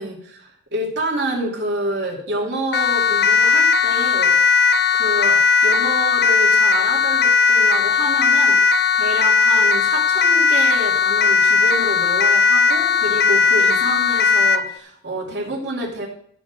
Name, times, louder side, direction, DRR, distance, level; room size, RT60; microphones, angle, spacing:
voice 1, 0.0-4.4 4.9-16.1, right 1 dB, 65° right, -3 dB, 2.7 m, -28 dB
Siren, 2.7-14.7, left 5 dB, 55° left, 0.4 m, -17 dB
13.5 x 5.2 x 6.3 m, 0.66 s
head